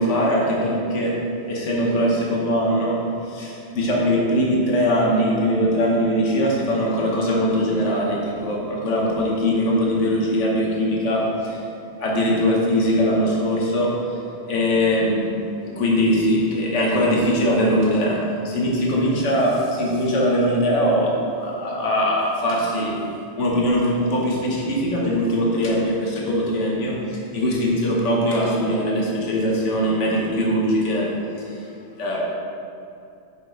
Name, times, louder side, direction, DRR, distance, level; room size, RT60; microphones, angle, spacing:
voice 1, 0.0-11.6 12.0-14.2 14.5-23.1 23.4-31.7 32.0-32.2, equal, 85° left, -3 dB, 1.5 m, -21 dB
8.1 x 5.9 x 3.9 m, 2.6 s
omnidirectional pair, 1.2 m